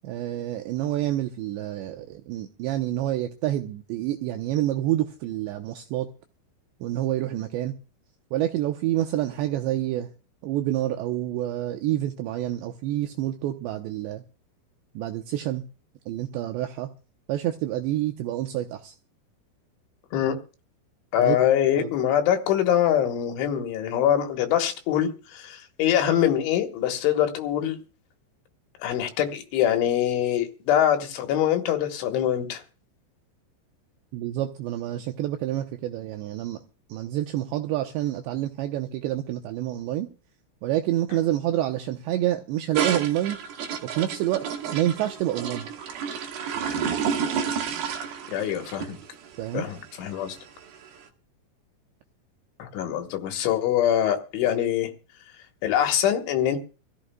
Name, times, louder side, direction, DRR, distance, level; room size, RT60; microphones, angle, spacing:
voice 1, 0.0-6.1 6.8-7.8 8.3-10.1 10.4-14.2 15.0-15.7 16.1-16.9 17.3-18.9 21.2-21.4 21.8-21.9 34.1-36.6 36.9-40.1 40.6-43.4 43.8-45.7 49.4-49.6, right 13 dB, 80° right, 2.6 m, -28 dB
voice 2, 21.1-27.8 28.8-32.6 48.3-49.0 49.5-50.4 52.6-54.9 55.6-56.6, left 10 dB, 75° left, 3.5 m, -24 dB
sound 1, 42.7-51.0, right 7 dB, 65° right, 2.7 m, -31 dB
25.0 x 14.5 x 2.2 m
omnidirectional pair, 5.8 m